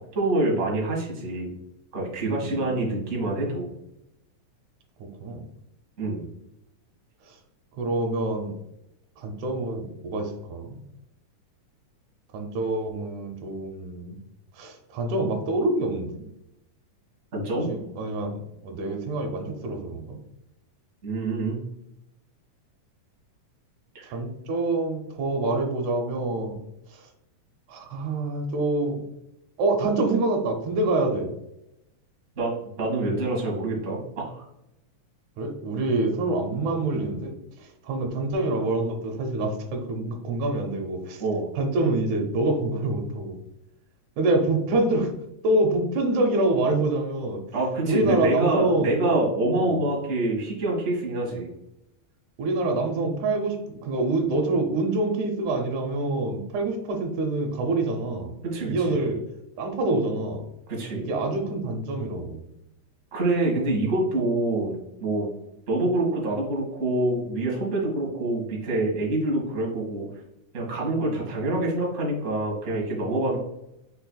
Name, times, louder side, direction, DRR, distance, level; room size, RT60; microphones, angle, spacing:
voice 1, 0.0-1.5 1.9-3.7 6.0-6.2 17.3-17.7 21.0-21.6 23.9-24.2 32.3-34.4 41.2-41.5 47.5-51.5 58.4-59.0 60.7-61.1 63.1-64.7 65.0-65.3 65.7-70.2 70.5-73.4, right 2 dB, 35° right, -3 dB, 1.4 m, -26 dB
voice 2, 2.3-2.9 5.2-5.4 7.3-7.4 7.8-8.5 9.2-10.8 12.3-14.2 14.6-16.2 17.7-18.3 18.6-20.2 24.1-26.6 26.9-27.1 27.7-29.0 29.6-31.3 35.4-37.3 37.6-41.2 41.6-43.4 44.2-45.1 45.4-47.4 47.9-48.9 49.6-49.7 52.4-53.6 53.8-58.3 58.6-59.2 59.6-60.4 60.9-62.4 71.1-71.3, right 2 dB, 85° right, 4 dB, 2.2 m, -26 dB
5.6 x 4.3 x 2.2 m, 0.85 s
omnidirectional pair, 3.4 m